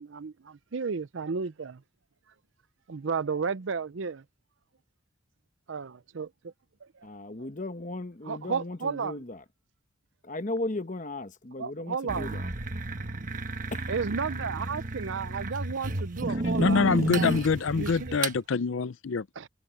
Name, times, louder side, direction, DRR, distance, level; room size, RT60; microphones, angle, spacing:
voice 1, 0.0-1.8 2.9-4.2 5.7-6.5 8.3-9.2 11.6-12.4 13.9-17.3 17.8-18.2 19.4-19.5, right 5 dB, 70° right, 0.6 m, -33 dB
voice 2, 7.0-9.4 10.2-12.5 13.7-13.9, left 2 dB, 40° left, 1.1 m, -36 dB
sound 1, 12.1-18.4, right 2 dB, 40° right, 1.2 m, -32 dB
voice 3, 16.6-19.3, left 4 dB, 75° left, 0.5 m, -25 dB
head